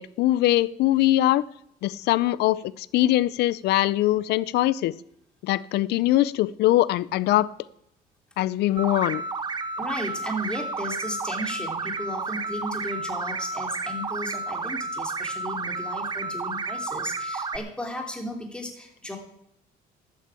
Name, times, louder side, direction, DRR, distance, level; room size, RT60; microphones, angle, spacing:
voice 1, 0.0-1.4 1.8-4.9 5.4-7.5 8.4-9.2, left 15 dB, 80° left, 20 dB, 0.6 m, -22 dB
sound 1, 8.8-17.6, right 3 dB, 25° right, 0.9 m, -31 dB
voice 2, 9.8-19.2, left 1 dB, 5° left, 2 dB, 3.1 m, -35 dB
12.5 x 8.5 x 8.3 m, 0.77 s
cardioid pair, 110°, 17 cm